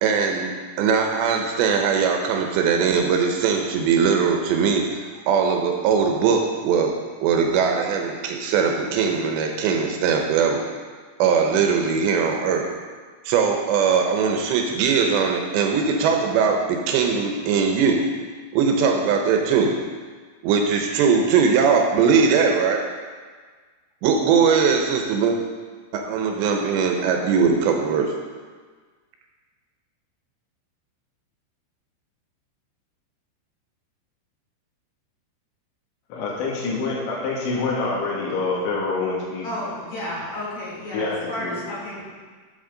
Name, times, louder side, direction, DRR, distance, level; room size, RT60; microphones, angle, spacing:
voice 1, 0.0-6.9 7.2-10.6 11.2-12.7 13.3-18.1 18.5-19.7 20.4-22.8 24.0-25.4 25.9-28.1, right 6 dB, 80° right, 3 dB, 2.8 m, -20 dB
voice 2, 36.1-39.5 40.9-41.6, left 3 dB, 75° left, -5 dB, 4.1 m, -26 dB
voice 3, 39.4-42.1, left 1 dB, 55° left, -5 dB, 2.1 m, -32 dB
13.0 x 6.9 x 3.8 m, 1.5 s
omnidirectional pair, 5.4 m